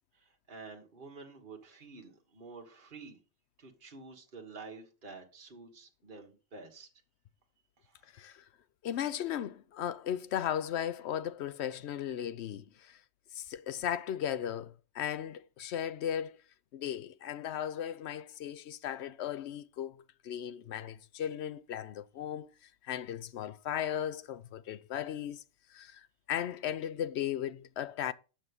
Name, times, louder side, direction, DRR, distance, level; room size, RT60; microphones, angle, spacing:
voice 1, 0.1-3.2 3.6-6.9 7.8-8.1, right 4 dB, 40° right, 1.8 m, -49 dB
voice 2, 8.1-8.4 8.8-13.0 13.3-16.4 16.7-22.5 22.8-25.4 25.7-28.1, left 10 dB, 65° left, 0.8 m, -36 dB
9.0 x 6.4 x 5.3 m
omnidirectional pair, 1.4 m